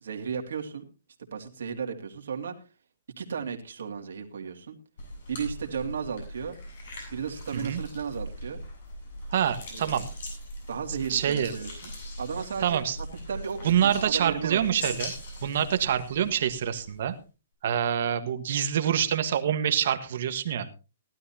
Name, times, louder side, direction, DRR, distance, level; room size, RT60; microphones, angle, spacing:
voice 1, 0.0-0.8 1.3-2.5 3.2-4.7 5.3-6.5 7.1-8.6 9.7-10.0 10.7-11.9 12.2-14.6, right 6 dB, 80° right, 3 dB, 2.4 m, -34 dB
sound 1, 5.0-17.2, equal, 60° left, 7.6 m, -40 dB
voice 2, 9.3-10.0 11.1-11.5 12.6-13.0 13.6-15.1 15.4-17.1 17.6-20.7, right 9 dB, 55° right, 9 dB, 1.4 m, -26 dB
18.5 x 12.5 x 2.8 m, 0.31 s
hypercardioid pair, 160°, 0 cm